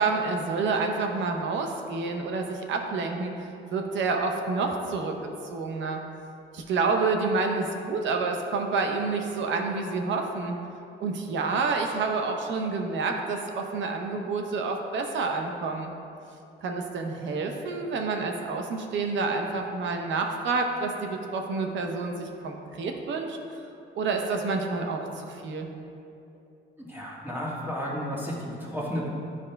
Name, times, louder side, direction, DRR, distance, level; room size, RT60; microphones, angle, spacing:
voice 1, 0.0-3.3 3.7-5.1 5.5-6.0 6.5-10.5 11.0-15.9 16.6-23.4 24.0-25.7, right 4 dB, 70° right, 3 dB, 0.7 m, -28 dB
voice 2, 26.8-29.1, equal, 10° right, -6 dB, 1.4 m, -33 dB
9.8 x 5.0 x 2.2 m, 2.7 s
cardioid pair, 90°, 20 cm